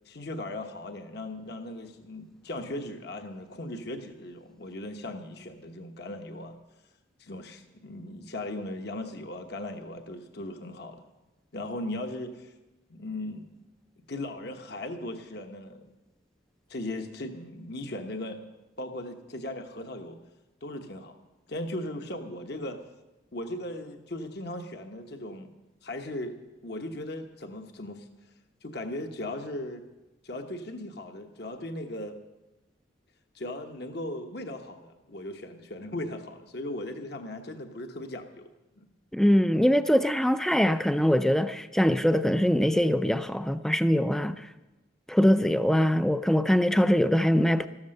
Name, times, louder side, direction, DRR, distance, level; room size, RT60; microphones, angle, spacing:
voice 1, 0.1-6.5 7.2-11.0 11.5-12.5 12.9-13.5 14.1-15.9 16.7-18.5 18.8-20.2 20.6-21.2 21.5-22.8 23.3-25.5 25.8-26.3 26.6-28.1 28.6-29.8 30.2-32.2 33.3-38.5 38.8-38.9, left 1 dB, 55° left, 1.1 m, -37 dB
voice 2, 39.1-44.5 45.1-47.7, equal, ahead, 0.4 m, -23 dB
13.5 x 13.5 x 6.6 m
head